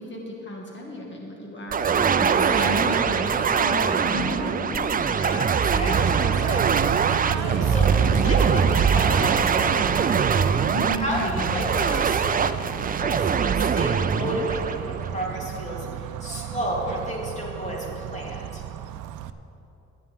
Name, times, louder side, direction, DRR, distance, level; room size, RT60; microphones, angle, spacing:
voice 1, 0.0-4.9 10.7-11.1, equal, 40° left, -1 dB, 2.0 m, -34 dB
sound 1, 1.7-15.6, right 6 dB, 30° right, 0.4 m, -23 dB
sound 2, 1.9-11.9, left 1 dB, 5° left, 0.8 m, -38 dB
voice 2, 5.1-9.8 10.2-10.4 10.9-12.5 12.9-18.6, equal, 25° left, -4 dB, 3.2 m, -32 dB
Bird / Train, 5.9-19.3, right 9 dB, 80° right, 0.5 m, -32 dB
16.5 x 9.9 x 3.6 m, 2.7 s
cardioid pair, 90°, 30 cm